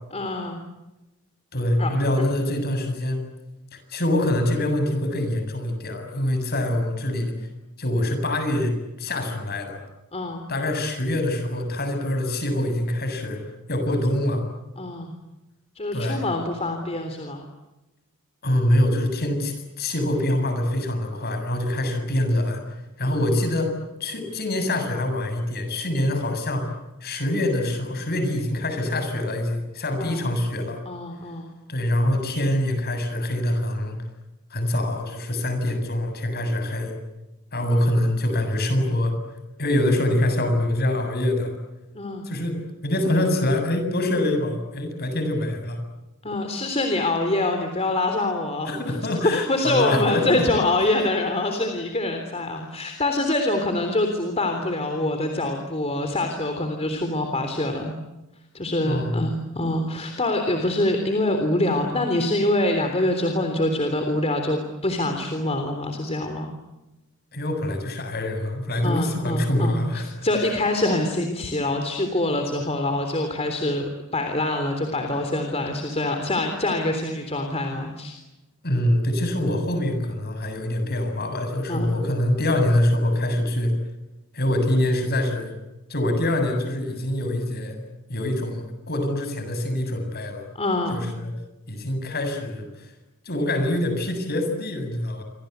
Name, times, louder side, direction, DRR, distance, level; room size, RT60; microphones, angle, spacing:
voice 1, 0.1-0.6 1.8-1.9 10.1-10.4 14.8-15.1 15.7-17.4 23.0-23.2 30.0-30.3 30.8-31.5 41.9-42.2 46.2-57.9 58.5-66.5 68.8-78.2 81.7-81.8 90.6-91.0, left 1 dB, 30° left, 5 dB, 3.5 m, -25 dB
voice 2, 1.5-3.2 3.7-7.5 7.8-9.8 10.5-13.4 13.7-14.4 15.9-16.2 18.4-23.7 24.0-26.7 27.0-30.8 31.7-34.0 34.5-37.0 37.5-39.1 39.6-41.5 42.2-45.8 48.6-50.5 58.8-59.2 67.3-70.1 70.4-70.5 78.6-83.7 84.3-85.5 85.9-87.8 88.1-90.4 90.9-91.3 91.7-92.9 93.2-95.2, left 1 dB, 45° left, 6 dB, 7.5 m, -25 dB
28.0 x 26.0 x 8.2 m, 1.0 s
head